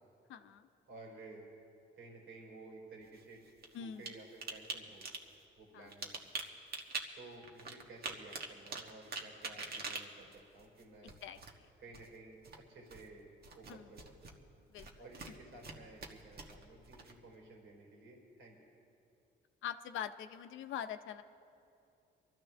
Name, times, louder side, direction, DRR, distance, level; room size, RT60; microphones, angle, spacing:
voice 1, 0.3-0.7 3.7-4.1 5.7-5.9 11.2-11.4 13.7-13.9 14.7-14.9 19.6-21.2, left 9 dB, 80° left, 10 dB, 0.6 m, -43 dB
voice 2, 0.9-1.4 1.9-3.4 3.8-5.0 5.6-6.2 7.1-11.1 11.8-13.2 13.5-14.3 15.0-18.6, right 2 dB, 85° right, -2 dB, 3.7 m, -54 dB
sound 1, 3.0-4.1 4.4-4.7 5.0-5.3 5.8-7.0 7.4-11.6 11.9-12.2 12.4-13.1 13.4-14.3 14.8-15.7 16.0-17.4, right 4 dB, 50° right, 1.4 m, -44 dB
23.5 x 13.5 x 3.4 m, 2.6 s
cardioid pair, 90°, 20 cm